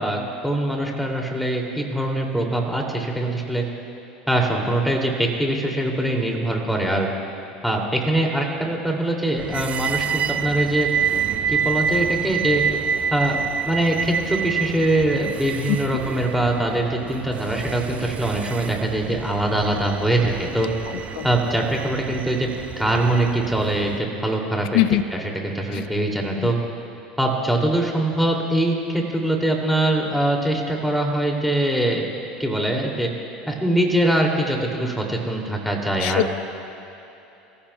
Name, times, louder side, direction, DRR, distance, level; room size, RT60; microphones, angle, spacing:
voice 1, 0.0-3.6 4.3-7.1 7.6-10.9 11.5-12.6 13.1-13.4 13.7-20.7 21.2-22.5 22.8-26.6 27.2-32.0 32.4-33.1 33.5-36.3, right 1 dB, ahead, 0 dB, 2.6 m, -23 dB
sound 1, 9.4-24.0, right 7 dB, 35° right, 0.6 m, -28 dB
voice 2, 15.7-15.8 21.2-21.3 24.7-25.0 25.7-25.8 26.4-26.5 36.0-36.3, left 16 dB, 65° left, 14 dB, 0.5 m, -21 dB
25.5 x 14.5 x 2.3 m, 3.0 s
hypercardioid pair, 80°, 4 cm